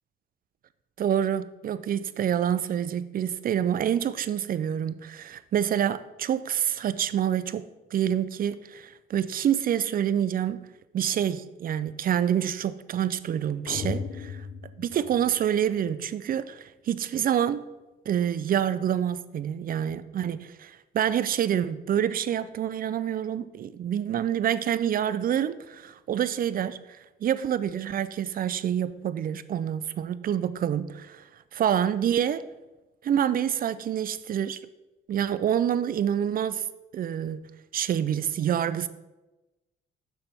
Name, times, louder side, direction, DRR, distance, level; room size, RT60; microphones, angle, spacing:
voice 1, 1.0-10.7 10.9-14.4 14.8-17.6 18.1-26.8 27.2-31.2 31.5-32.4 33.0-34.6 35.1-36.6 36.9-37.4 37.7-38.9, right 9 dB, 45° right, 15 dB, 0.4 m, -27 dB
sound 1, 13.7-15.8, left 5 dB, 80° left, 0.8 m, -36 dB
6.8 x 5.9 x 3.4 m, 1.1 s
cardioid pair, 90°, 20 cm